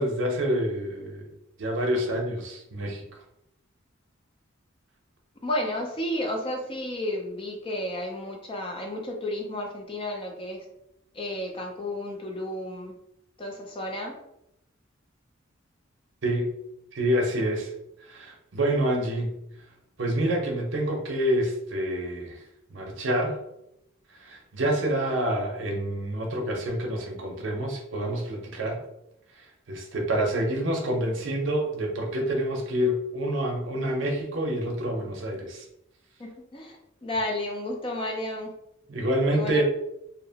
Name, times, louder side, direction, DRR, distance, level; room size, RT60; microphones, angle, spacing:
voice 1, 0.0-1.3 1.6-3.2 16.2-16.5 16.9-17.7 18.0-19.4 20.0-22.4 22.7-23.4 24.1-28.8 29.4-35.6 38.9-39.6, right 1 dB, 65° right, 1 dB, 0.6 m, -27 dB
voice 2, 5.4-10.6 11.1-12.9 13.4-14.2 36.2-38.5 39.3-39.6, left 1 dB, 25° left, 2 dB, 0.4 m, -32 dB
2.7 x 2.1 x 2.7 m, 0.82 s
head